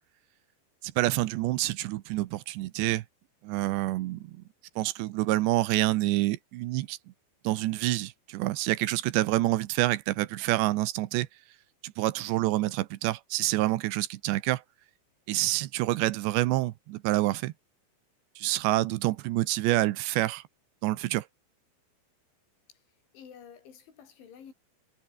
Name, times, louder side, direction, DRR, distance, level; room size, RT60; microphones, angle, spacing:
voice 1, 0.8-3.0 3.4-4.4 4.8-7.0 7.4-11.3 11.8-14.6 15.3-17.5 18.4-20.4 20.8-21.3, right 17 dB, 75° right, 2.9 m, -27 dB
voice 2, 23.1-24.5, left 7 dB, 70° left, 7.0 m, -50 dB
omnidirectional pair, 5.6 m